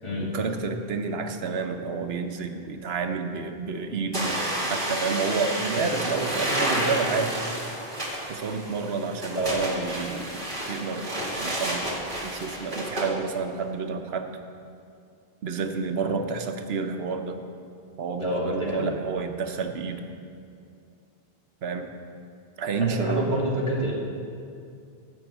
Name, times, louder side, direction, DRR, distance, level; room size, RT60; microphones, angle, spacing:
voice 1, 0.3-4.4 4.7-7.3 8.3-10.3 10.7-11.0 11.4-11.9 12.2-14.3 15.4-17.4 18.0-20.0 21.6-21.9 22.6-23.4, right 4 dB, 85° right, 6 dB, 1.0 m, -29 dB
sound 1, 4.1-13.1, right 1 dB, 50° right, 2.2 m, -30 dB
voice 2, 18.2-18.9 22.9-23.9, right 1 dB, 30° left, -6 dB, 2.4 m, -27 dB
12.5 x 5.5 x 8.0 m, 2.4 s
omnidirectional pair, 1.0 m